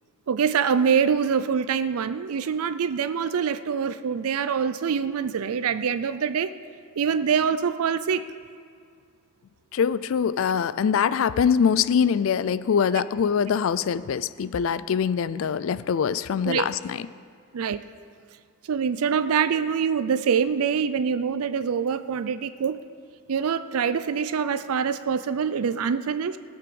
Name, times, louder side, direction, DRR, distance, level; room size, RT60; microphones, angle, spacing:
voice 1, 0.3-6.5 7.0-8.3 16.4-16.7 17.5-17.8 18.7-22.8 23.3-26.4, right 6 dB, 80° right, 13 dB, 0.4 m, -25 dB
voice 2, 9.7-17.1, left 7 dB, 65° left, 16 dB, 0.3 m, -23 dB
17.5 x 6.0 x 7.0 m, 2.1 s
head